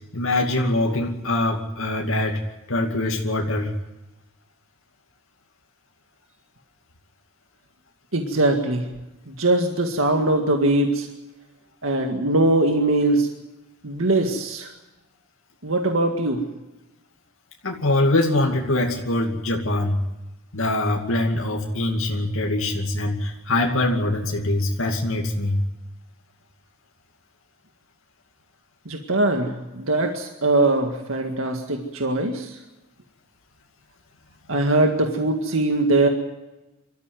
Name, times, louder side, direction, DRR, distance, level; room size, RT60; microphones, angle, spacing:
voice 1, 0.1-2.4 2.7-3.7 17.6-20.0 20.5-25.6, left 1 dB, 75° left, 1 dB, 2.5 m, -23 dB
voice 2, 8.1-8.9 9.3-11.1 11.8-13.3 13.8-14.7 15.6-16.4 28.9-32.5 34.5-36.1, right 2 dB, 75° right, 4 dB, 2.0 m, -21 dB
24.5 x 14.0 x 9.4 m, 1.0 s
head